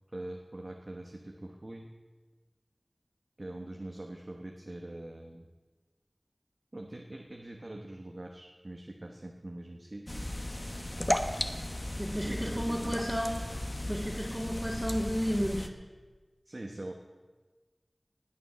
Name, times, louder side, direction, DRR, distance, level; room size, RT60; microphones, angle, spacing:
voice 1, 0.1-1.9 3.4-5.5 6.7-10.4 12.2-13.2 16.5-16.9, right 1 dB, 55° right, 2 dB, 1.1 m, -43 dB
sound 1, 10.1-15.7, left 1 dB, 35° left, 1.0 m, -35 dB
voice 2, 12.0-13.3 13.9-15.7, equal, 10° right, -6 dB, 2.1 m, -32 dB
19.5 x 6.9 x 6.2 m, 1.3 s
wide cardioid pair, 45°, 0 cm